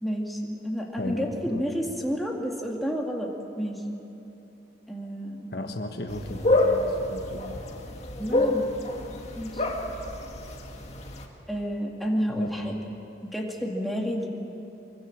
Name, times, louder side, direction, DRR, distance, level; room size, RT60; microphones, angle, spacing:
voice 1, 0.0-3.8 4.9-5.6 8.2-8.7 9.4-9.6 11.5-12.8 13.2-14.3, equal, ahead, -1 dB, 2.3 m, -30 dB
voice 2, 1.0-1.7 5.5-7.6 12.3-12.6, left 1 dB, 55° left, 4 dB, 1.5 m, -35 dB
sound 1, 6.1-11.2, left 2 dB, 35° left, 2.1 m, -28 dB
24.5 x 23.5 x 7.4 m, 3.0 s
head